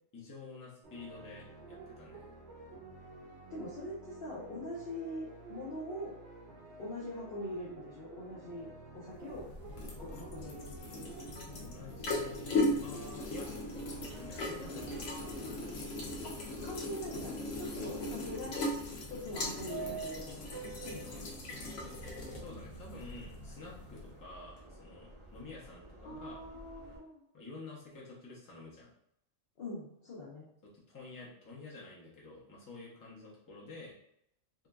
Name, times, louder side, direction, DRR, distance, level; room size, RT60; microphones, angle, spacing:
voice 1, 0.1-2.3 11.5-13.5 14.0-15.0 22.3-26.4 27.3-28.9 30.6-34.0, left 3 dB, 20° left, -4 dB, 0.6 m, -49 dB
sound 1, 0.8-15.8, right 3 dB, 60° right, 1.1 m, -51 dB
voice 2, 3.5-6.2 6.8-8.7 8.9-9.5 9.8-11.0 16.2-18.6 19.1-21.4 26.0-27.2 29.6-30.5, left 1 dB, 55° left, -6 dB, 0.8 m, -43 dB
sound 2, 9.1-24.2, left 2 dB, 90° left, 1.1 m, -38 dB
Subway metro underground, 13.2-27.0, right 3 dB, 30° right, 0.5 m, -50 dB
3.7 x 2.5 x 2.2 m, 0.76 s
omnidirectional pair, 1.3 m